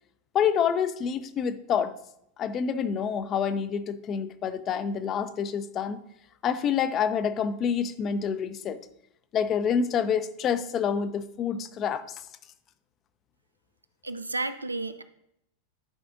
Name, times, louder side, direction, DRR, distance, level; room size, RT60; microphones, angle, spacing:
voice 1, 0.3-1.9 2.4-6.0 6.4-8.8 9.3-12.2, left 7 dB, 30° left, 12 dB, 0.5 m, -27 dB
voice 2, 14.0-15.0, right 2 dB, 80° right, 11 dB, 0.4 m, -32 dB
11.5 x 4.9 x 2.5 m, 0.78 s
figure-of-eight pair, 90°, 0 cm